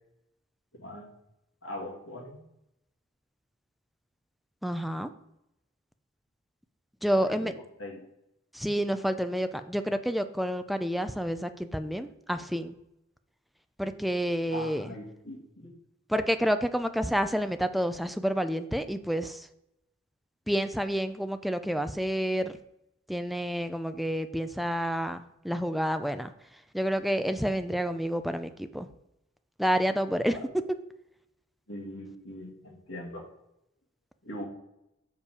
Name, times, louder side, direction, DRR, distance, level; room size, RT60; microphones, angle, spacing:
voice 1, 0.7-1.1 1.6-2.4 7.1-8.1 14.5-15.7 30.1-30.5 31.7-33.2 34.2-34.4, left 1 dB, 80° left, -2 dB, 2.2 m, -41 dB
voice 2, 4.6-5.1 7.0-7.5 8.5-12.7 13.8-14.9 16.1-19.5 20.5-22.6 23.1-26.3 26.7-28.9 29.6-30.4, equal, ahead, 9 dB, 0.4 m, -29 dB
6.8 x 5.3 x 4.9 m, 0.84 s
head